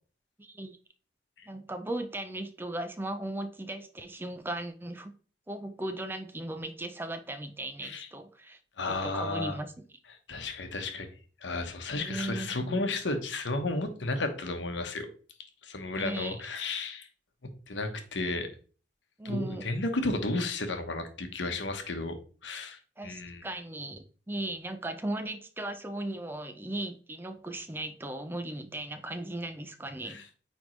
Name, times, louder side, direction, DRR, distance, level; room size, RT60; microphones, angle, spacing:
voice 1, 0.4-0.8 1.5-5.1 5.5-8.6 8.9-9.7 11.9-12.8 15.9-16.4 19.2-19.6 23.0-30.2, right 1 dB, 10° right, 0.4 m, -37 dB
voice 2, 8.8-9.6 10.3-11.1 11.4-15.1 15.6-17.1 17.7-18.5 19.2-22.1 22.4-23.5 30.1-30.2, left 2 dB, 75° left, 1.0 m, -33 dB
8.8 x 3.5 x 3.1 m
head